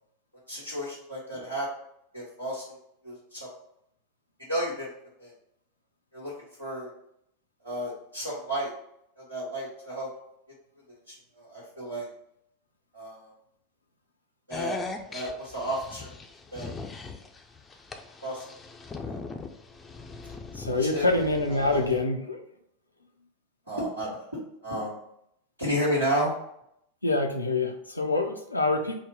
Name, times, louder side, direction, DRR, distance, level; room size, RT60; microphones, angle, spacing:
voice 1, 0.5-1.7 2.1-2.8 3.0-3.5 4.5-4.9 5.2-5.3 6.1-6.3 6.6-6.9 7.6-8.7 9.2-10.1 11.1-12.1 12.9-13.3 14.5-14.8 15.1-16.1 16.5-16.7 18.2-18.4 19.1-19.2 20.7-21.0 21.5-21.8 23.7-25.0 25.6-26.4, equal, 85° right, -7 dB, 1.4 m, -32 dB
sound 1, 14.5-22.0, left 4 dB, 20° left, 0.5 m, -40 dB
voice 2, 20.5-22.5 27.0-29.0, left 2 dB, 90° left, 3 dB, 0.6 m, -26 dB
3.8 x 2.1 x 4.4 m, 0.74 s
figure-of-eight pair, 85°, 0 cm